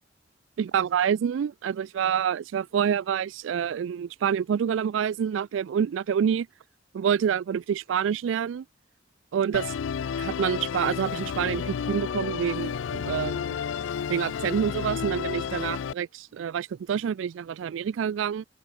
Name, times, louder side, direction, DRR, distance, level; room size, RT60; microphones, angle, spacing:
voice 1, 0.6-6.5 6.9-8.6 9.3-9.7 10.2-13.4 14.1-18.4, right 8 dB, 75° right, 0.3 m, -27 dB
Musical instrument, 9.5-15.9, left 7 dB, 75° left, 0.4 m, -31 dB
open air
head